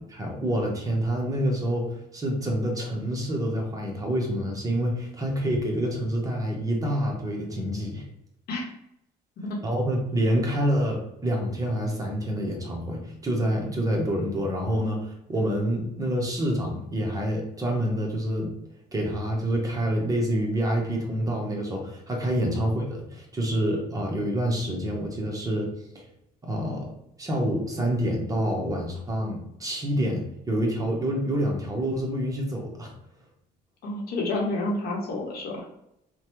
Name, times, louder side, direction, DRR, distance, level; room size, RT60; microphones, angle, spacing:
voice 1, 0.1-8.0 9.6-18.5 18.9-25.7 26.4-26.9 27.2-32.9, equal, 20° right, 0 dB, 0.8 m, -27 dB
voice 2, 33.8-35.7, left 2 dB, 65° left, -1 dB, 0.9 m, -29 dB
3.1 x 2.1 x 2.9 m, 0.81 s
cardioid pair, 110°, 17 cm